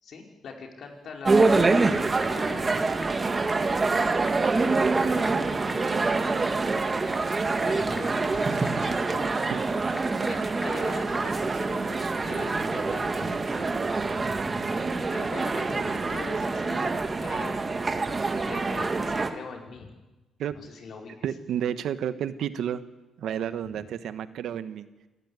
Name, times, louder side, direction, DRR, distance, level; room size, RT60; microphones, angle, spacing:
voice 1, 0.0-2.9 4.3-5.4 5.7-6.8 7.6-9.6 10.1-14.2 14.7-14.8 15.1-19.9 20.5-21.3 23.7-23.8, left 5 dB, 60° left, 2 dB, 4.8 m, -43 dB
Typing / Telephone, 0.8-11.4, left 1 dB, 15° left, 3.5 m, -46 dB
sound 1, 1.2-19.3, right 3 dB, 30° right, 1.9 m, -26 dB
voice 2, 21.2-22.8 23.2-24.9, right 9 dB, 75° right, 12 dB, 1.2 m, -31 dB
26.0 x 14.5 x 9.7 m, 1.1 s
cardioid pair, 90°, 0 cm